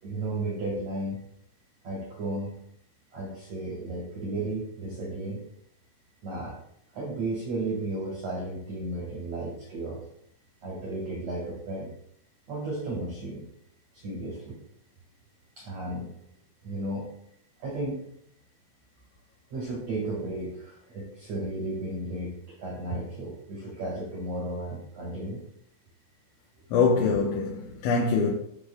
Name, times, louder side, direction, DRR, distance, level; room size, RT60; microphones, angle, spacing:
voice 1, 0.0-1.2 1.8-2.6 3.1-5.4 6.2-6.6 6.9-10.0 10.6-11.9 12.5-13.5 13.9-14.6 15.6-16.1 16.6-17.1 17.6-18.1 19.5-25.4, right 2 dB, 65° right, 1.7 m, -34 dB
voice 2, 26.7-28.3, left 4 dB, 75° left, 3.2 m, -24 dB
18.5 x 6.4 x 2.3 m
omnidirectional pair, 5.8 m